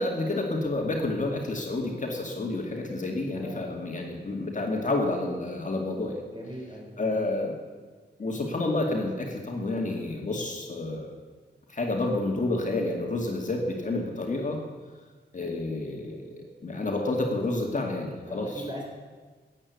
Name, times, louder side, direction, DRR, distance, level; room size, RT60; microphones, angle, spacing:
voice 1, 0.0-6.2 7.0-7.5 8.2-11.1 11.7-14.6 15.3-18.6, left 2 dB, 45° left, 1 dB, 2.2 m, -29 dB
voice 2, 6.3-7.2 18.3-18.9, equal, 25° right, -1 dB, 4.5 m, -40 dB
14.5 x 9.0 x 8.4 m, 1.4 s
wide cardioid pair, 115°, 18 cm